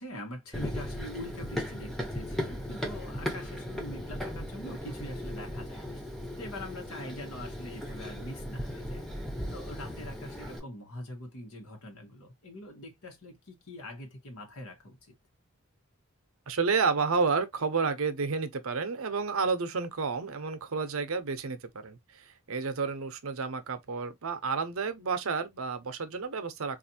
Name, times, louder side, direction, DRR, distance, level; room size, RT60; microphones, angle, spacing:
voice 1, 0.0-6.0 6.4-9.1 9.5-15.1, left 1 dB, 80° left, 1.2 m, -44 dB
Run, 0.5-10.6, left 1 dB, ahead, 0.7 m, -37 dB
voice 2, 16.5-26.8, right 4 dB, 75° right, 0.7 m, -30 dB
4.1 x 2.5 x 2.7 m
head